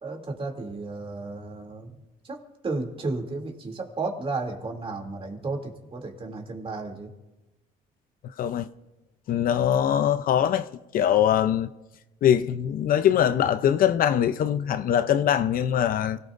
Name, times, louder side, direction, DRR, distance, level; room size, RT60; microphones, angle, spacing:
voice 1, 0.0-1.9 2.2-7.1, right 3 dB, 35° right, 2.8 m, -33 dB
voice 2, 9.3-10.7 10.9-11.7 12.2-16.2, left 10 dB, 55° left, 0.6 m, -22 dB
29.0 x 17.5 x 2.6 m
cardioid pair, 110°, 17 cm